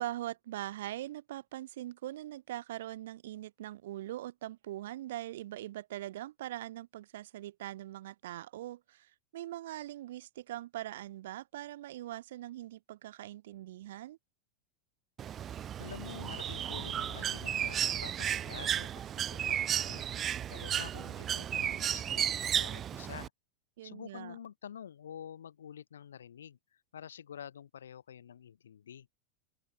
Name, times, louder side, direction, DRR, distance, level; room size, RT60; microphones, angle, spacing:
voice 1, 0.0-14.2 23.8-24.3, right 14 dB, 70° right, 2.5 m, -42 dB
Bird, 15.2-23.3, right 9 dB, 30° right, 0.6 m, -34 dB
voice 2, 15.8-18.9 19.1-20.1 20.5-23.3 23.8-29.1, left 9 dB, 80° left, 5.4 m, -48 dB
open air
hypercardioid pair, 95°, 0 cm